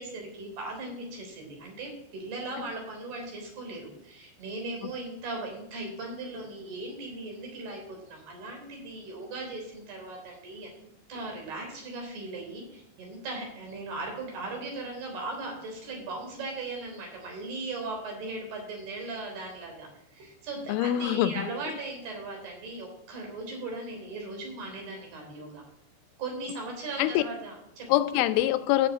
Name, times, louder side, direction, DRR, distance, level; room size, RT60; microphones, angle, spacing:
voice 1, 0.0-10.7 11.1-25.6 26.2-27.9, right 2 dB, 55° right, 1 dB, 5.4 m, -38 dB
voice 2, 20.7-21.4 27.0-27.2 27.9-28.9, left 14 dB, 90° left, 12 dB, 3.2 m, -24 dB
11.5 x 7.0 x 8.7 m, 0.77 s
omnidirectional pair, 5.5 m